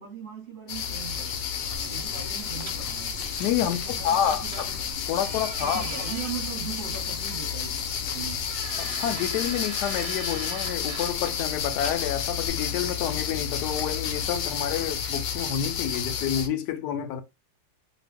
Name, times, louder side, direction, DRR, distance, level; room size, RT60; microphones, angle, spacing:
voice 1, 0.0-3.2 3.6-5.2 5.6-8.5, right 8 dB, 30° right, 1.2 m, -40 dB
sound 1, 0.7-16.5, left 7 dB, 90° left, 1.3 m, -31 dB
sound 2, 1.7-12.5, right 6 dB, 75° right, 1.1 m, -43 dB
sound 3, 1.8-10.0, left 2 dB, 50° left, 0.5 m, -47 dB
voice 2, 3.4-4.7 5.1-5.8 8.8-17.2, left 9 dB, 75° left, 1.1 m, -29 dB
3.0 x 2.3 x 3.3 m
omnidirectional pair, 1.9 m